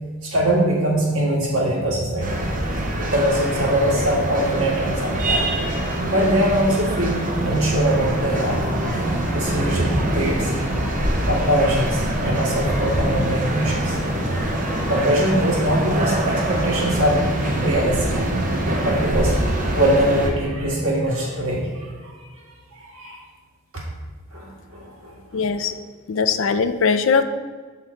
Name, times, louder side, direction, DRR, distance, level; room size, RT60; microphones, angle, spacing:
voice 1, 0.2-2.5 3.0-5.5 6.1-8.6 9.3-10.5 11.2-14.0 14.9-17.3 17.6-18.2 18.8-19.5 19.7-22.3 22.7-23.2 23.7-23.8 24.3-25.2, right 1 dB, 85° right, -4 dB, 1.9 m, -22 dB
sound 1, 2.2-20.3, right 1 dB, 40° right, 0.8 m, -24 dB
sound 2, 7.8-18.3, left 1 dB, 5° left, 0.5 m, -32 dB
voice 2, 25.3-25.7 26.1-27.2, left 5 dB, 65° left, 9 dB, 0.4 m, -20 dB
7.1 x 3.9 x 4.4 m, 1.5 s
head